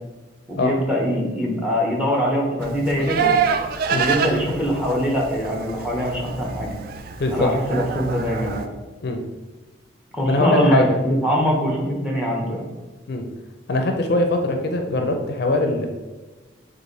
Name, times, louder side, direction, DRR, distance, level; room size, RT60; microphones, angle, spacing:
voice 1, 0.5-3.3 3.9-6.7 7.3-8.7 10.1-12.7, equal, 5° right, -2 dB, 0.8 m, -22 dB
Livestock farm animals working animals, 2.6-8.7, right 6 dB, 50° right, 0.3 m, -26 dB
voice 2, 10.2-11.0 13.1-13.3 13.7-15.9, left 2 dB, 55° left, 4 dB, 0.5 m, -22 dB
4.7 x 2.4 x 3.9 m, 1.3 s
head